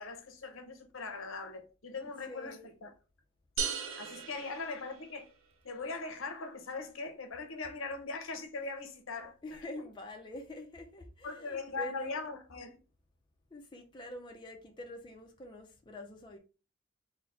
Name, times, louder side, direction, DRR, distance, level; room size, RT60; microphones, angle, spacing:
voice 1, 0.0-2.9 4.0-5.3 5.6-9.6 11.2-12.8, left 4 dB, 75° left, 0.8 m, -40 dB
voice 2, 2.3-2.6 9.4-12.2 13.5-16.4, left 1 dB, 20° left, 0.5 m, -46 dB
sound 1, 3.6-5.4, right 6 dB, 80° right, 0.7 m, -38 dB
3.9 x 2.1 x 4.0 m
head